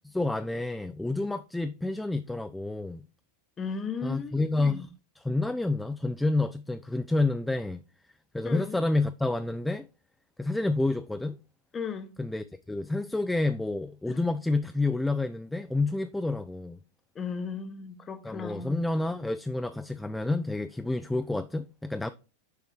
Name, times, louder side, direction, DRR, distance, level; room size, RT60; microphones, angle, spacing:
voice 1, 0.0-3.0 4.0-7.8 8.3-9.8 10.4-11.4 12.2-16.8 18.2-22.1, left 2 dB, 5° left, 0.3 m, -29 dB
voice 2, 3.6-4.9 8.4-8.8 11.7-12.1 14.1-14.2 17.2-18.8, left 5 dB, 20° left, 0.9 m, -36 dB
6.4 x 4.6 x 3.6 m
figure-of-eight pair, 90°, 0 cm